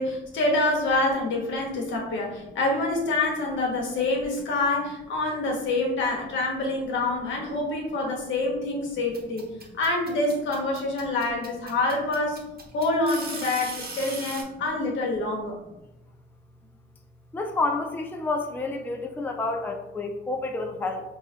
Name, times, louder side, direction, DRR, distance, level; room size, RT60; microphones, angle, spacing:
voice 1, 0.0-9.5 9.8-12.4 12.7-15.6, left 2 dB, 70° left, 0 dB, 1.1 m, -26 dB
sound 1, 9.1-14.4, right 3 dB, 50° right, 1.0 m, -38 dB
voice 2, 17.3-21.0, left 3 dB, 10° left, 4 dB, 0.4 m, -29 dB
4.6 x 2.5 x 2.7 m, 0.93 s
cardioid pair, 90°, 20 cm